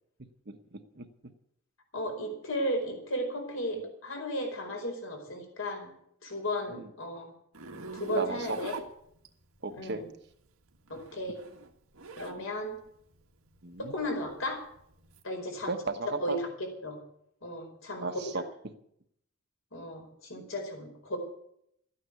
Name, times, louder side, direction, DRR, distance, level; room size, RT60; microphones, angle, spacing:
voice 1, 0.5-1.0 6.7-6.9 8.1-8.6 9.6-10.0 12.4-12.5 13.6-14.0 15.7-16.4 18.0-18.4, right 3 dB, 50° right, 8 dB, 1.1 m, -35 dB
voice 2, 1.9-5.9 6.2-7.3 7.9-8.7 9.7-10.1 10.9-11.4 12.2-12.8 13.8-14.6 15.2-15.8 16.2-17.0 17.4-18.4 19.7-21.2, equal, 65° left, 2 dB, 4.7 m, -35 dB
Zipper (clothing), 7.5-9.6 10.7-12.4 12.8-15.2, right 3 dB, 80° right, 1.6 m, -43 dB
13.5 x 9.5 x 8.4 m, 0.72 s
head